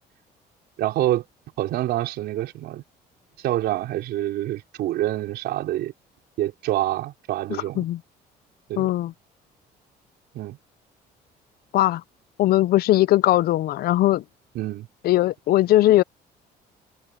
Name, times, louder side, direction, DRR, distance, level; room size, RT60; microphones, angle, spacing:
voice 1, 0.8-1.2 1.6-2.8 3.4-5.9 6.4-7.8 8.7-8.9 10.3-10.6 14.5-14.9, right 14 dB, 75° right, 4.7 m, -26 dB
voice 2, 8.8-9.1 11.7-12.0 12.4-14.2 15.0-16.0, left 15 dB, 65° left, 0.6 m, -19 dB
cardioid pair, 110°, 17 cm